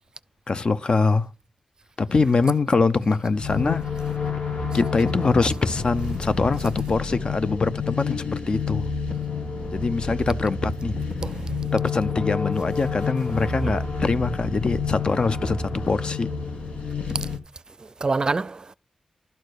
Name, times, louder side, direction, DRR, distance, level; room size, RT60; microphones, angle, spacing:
voice 1, 0.5-1.3 2.0-3.8 4.7-8.9 9.7-11.1 11.7-16.3, left 4 dB, 50° left, 0.7 m, -23 dB
sound 1, 3.3-17.4, left 4 dB, 85° left, 1.8 m, -29 dB
voice 2, 17.8-18.7, right 3 dB, 40° right, 0.5 m, -27 dB
12.0 x 4.4 x 6.5 m
wide cardioid pair, 85°, 2 cm